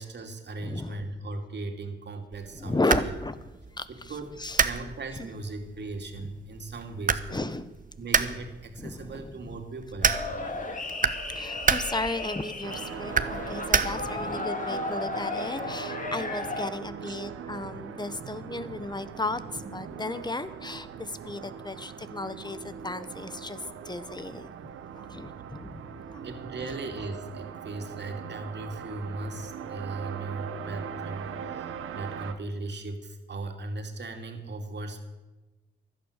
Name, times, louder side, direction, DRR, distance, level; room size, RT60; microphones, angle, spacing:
voice 1, 0.0-3.1 3.9-7.4 8.0-10.2 17.0-17.2 26.2-35.0, right 2 dB, 55° right, 4 dB, 2.8 m, -38 dB
voice 2, 0.6-1.0 2.5-3.4 3.8-4.1 4.4-4.6 5.2-5.3 6.2-6.3 7.3-7.7 8.8-9.3 10.4-10.9 11.3-24.5 24.9-25.8 26.1-26.2, left 2 dB, 20° left, 13 dB, 1.3 m, -34 dB
sound 1, 2.3-14.3, right 5 dB, 40° right, 1.1 m, -31 dB
sound 2, 10.0-16.7, left 3 dB, 40° left, 2.3 m, -35 dB
sound 3, 12.6-32.3, right 7 dB, 85° right, 1.2 m, -40 dB
15.5 x 11.5 x 6.7 m, 1.1 s
cardioid pair, 60°, 21 cm